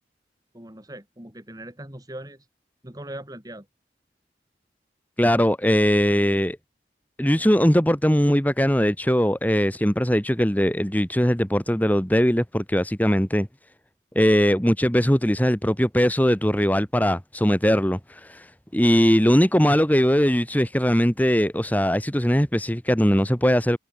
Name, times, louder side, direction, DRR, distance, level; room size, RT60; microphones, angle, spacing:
voice 1, 0.5-2.4 2.8-3.7, right 1 dB, 20° right, 3.7 m, -40 dB
voice 2, 5.2-6.6 7.2-13.5 14.2-23.8, equal, 10° left, 1.8 m, -20 dB
head